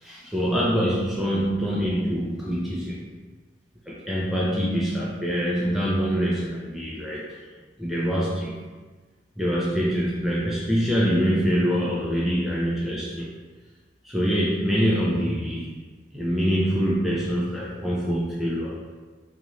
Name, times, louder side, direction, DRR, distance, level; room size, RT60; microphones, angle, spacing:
voice 1, 0.0-3.0 3.9-7.3 7.8-8.6 9.4-13.3 14.0-15.7 16.1-18.8, equal, ahead, -6 dB, 0.4 m, -25 dB
3.9 x 2.5 x 3.0 m, 1.4 s
head